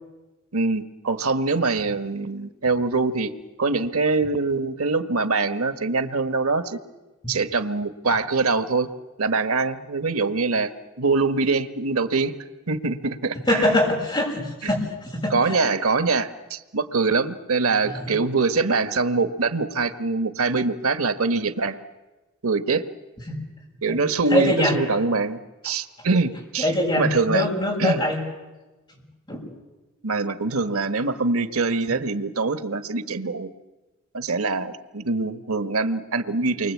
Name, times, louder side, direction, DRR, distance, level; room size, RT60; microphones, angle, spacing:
voice 1, 0.5-3.3 3.6-6.8 7.3-8.9 9.2-10.7 11.0-12.3 12.7-13.7 14.6-14.7 15.3-21.8 22.4-22.8 23.8-26.7 27.0-27.5 27.8-28.0 30.0-33.5 34.1-36.7, right 3 dB, 90° right, 10 dB, 1.3 m, -24 dB
voice 2, 13.5-15.6 17.8-18.1 23.3-23.4 24.3-24.8 26.6-28.2 29.3-29.4, left 1 dB, 20° left, -1 dB, 7.2 m, -23 dB
29.0 x 23.5 x 8.5 m, 1.1 s
head